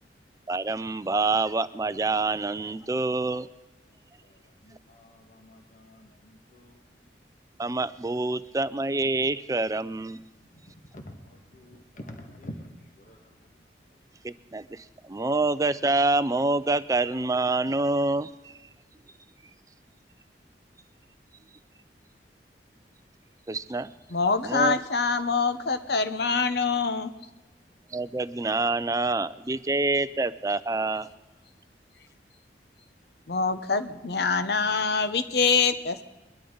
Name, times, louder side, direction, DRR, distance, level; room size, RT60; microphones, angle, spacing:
voice 1, 0.5-3.5 7.6-10.2 14.2-18.5 23.5-23.9 24.4-24.7 27.9-31.1, right 2 dB, 20° right, 15 dB, 0.4 m, -26 dB
voice 2, 4.6-6.8 10.9-12.7 13.0-13.2, left 1 dB, 45° left, 3 dB, 1.7 m, -46 dB
voice 3, 24.1-27.1 33.3-36.0, left 4 dB, 65° left, 11 dB, 0.9 m, -25 dB
23.0 x 12.5 x 3.9 m, 1.1 s
head